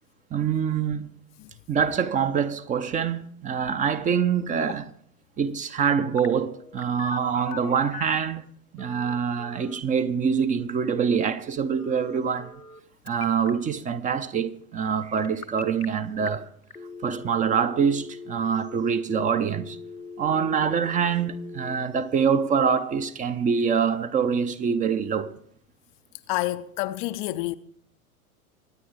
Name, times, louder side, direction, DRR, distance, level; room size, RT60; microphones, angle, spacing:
voice 1, 0.3-1.1 1.7-4.9 5.4-8.5 8.7-12.6 13.1-16.5 17.0-19.8 20.2-25.3, right 6 dB, 20° right, 0.7 m, -25 dB
Telephone, 6.2-8.3 8.8-9.8 11.8-12.8 13.1-13.5 15.2-15.8 16.3-16.4 16.7-21.8, left 4 dB, 90° left, 1.0 m, -41 dB
voice 2, 26.3-27.6, left 17 dB, 35° left, 0.6 m, -28 dB
23.5 x 9.4 x 5.1 m
figure-of-eight pair, 90°, 43 cm